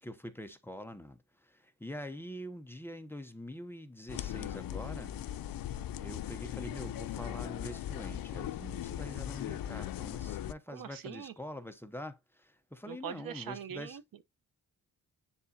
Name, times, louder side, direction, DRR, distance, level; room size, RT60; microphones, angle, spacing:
voice 1, 0.0-5.1 6.0-14.0, left 1 dB, 5° left, 0.8 m, -45 dB
sound 1, 4.1-10.5, left 11 dB, 80° left, 0.6 m, -39 dB
voice 2, 10.7-11.3 12.9-14.2, right 8 dB, 80° right, 1.0 m, -42 dB
9.7 x 3.6 x 2.8 m
wide cardioid pair, 120°, 34 cm